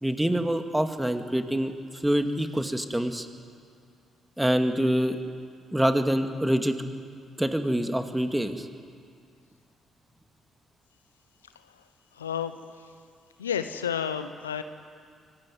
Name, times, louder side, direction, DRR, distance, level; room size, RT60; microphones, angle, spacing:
voice 1, 0.0-1.8 2.0-3.3 4.4-5.2 5.7-6.7 7.4-8.7, right 1 dB, 10° right, 6 dB, 2.3 m, -25 dB
voice 2, 11.4-11.8 12.1-12.9 13.4-14.6, left 8 dB, 90° left, 10 dB, 0.8 m, -32 dB
24.0 x 19.0 x 9.4 m, 2.2 s
hypercardioid pair, 45°, 0 cm